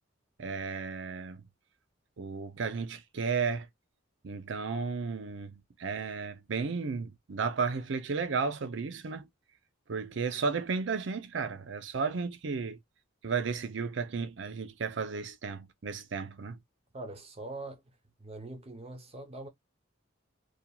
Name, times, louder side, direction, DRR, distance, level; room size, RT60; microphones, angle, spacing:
voice 1, 0.4-1.4 2.2-3.7 4.2-9.3 9.9-12.8 13.2-16.6, right 5 dB, 65° right, 0.5 m, -33 dB
voice 2, 16.9-17.8 18.2-19.5, right 2 dB, 30° right, 0.7 m, -42 dB
2.9 x 2.4 x 2.2 m
head